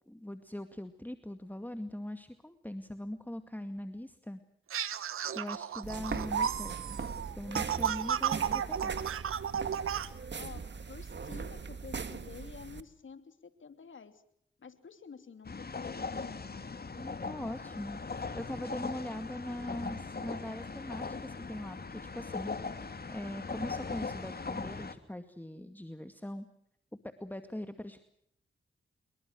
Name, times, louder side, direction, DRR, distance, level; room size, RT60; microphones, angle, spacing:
voice 1, 0.1-4.4 5.3-6.8 7.4-9.0 17.0-22.5 23.1-26.5 27.0-28.0, left 1 dB, 10° left, 8 dB, 2.2 m, -41 dB
sound 1, 4.7-10.1, right 8 dB, 85° right, 1.2 m, -33 dB
sound 2, 5.8-12.8, right 5 dB, 55° right, 2.1 m, -40 dB
voice 2, 10.4-14.2 14.6-16.8, left 6 dB, 70° left, 9 dB, 3.1 m, -49 dB
sound 3, 15.4-24.9, left 4 dB, 50° left, 2.6 m, -39 dB
26.5 x 22.5 x 6.2 m, 0.72 s
cardioid pair, 45°, 21 cm